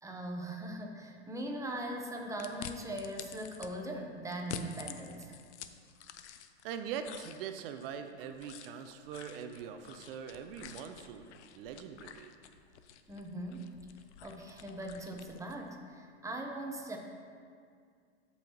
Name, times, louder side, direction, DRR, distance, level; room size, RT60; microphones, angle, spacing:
voice 1, 0.0-5.4 13.1-13.7 14.2-17.0, right 1 dB, 10° right, 2 dB, 0.9 m, -40 dB
sound 1, 2.4-3.7 4.3-6.7 7.0-15.6, left 8 dB, 75° left, 0.6 m, -49 dB
voice 2, 6.6-12.3, right 8 dB, 55° right, 7 dB, 0.6 m, -42 dB
13.5 x 5.6 x 3.0 m, 2.2 s
hypercardioid pair, 120°, 34 cm